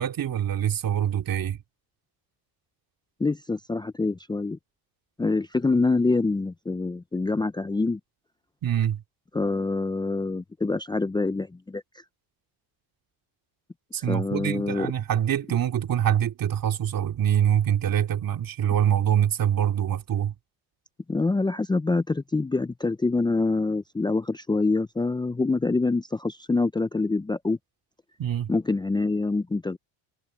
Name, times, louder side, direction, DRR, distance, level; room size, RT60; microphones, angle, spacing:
voice 1, 0.0-1.6 8.6-9.0 13.9-20.4 28.2-28.5, right 10 dB, 45° right, 2.8 m, -25 dB
voice 2, 3.2-4.6 5.2-8.0 9.3-11.8 14.1-14.9 21.1-27.6 28.5-29.8, left 3 dB, 10° left, 0.6 m, -25 dB
cardioid pair, 105°, 47 cm